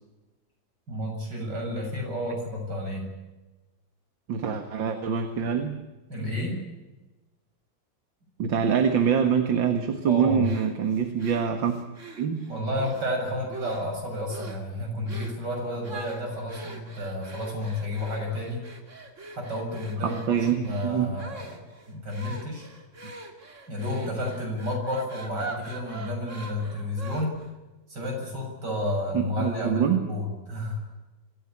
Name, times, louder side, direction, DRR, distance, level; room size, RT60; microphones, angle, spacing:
voice 1, 0.9-3.0 6.1-6.6 10.0-10.5 12.5-18.6 19.3-22.7 23.7-27.4 27.9-30.8, left 1 dB, 65° right, 1 dB, 7.9 m, -31 dB
voice 2, 4.3-5.8 8.4-11.7 12.2-12.4 20.0-21.1 29.1-30.0, right 7 dB, 80° right, 7 dB, 2.4 m, -25 dB
sound 1, 10.4-13.1 13.5-14.0 14.3-14.7 15.1-15.4 15.8-27.5, right 3 dB, 40° right, 2.7 m, -43 dB
25.5 x 15.5 x 8.6 m, 1.1 s
omnidirectional pair, 2.0 m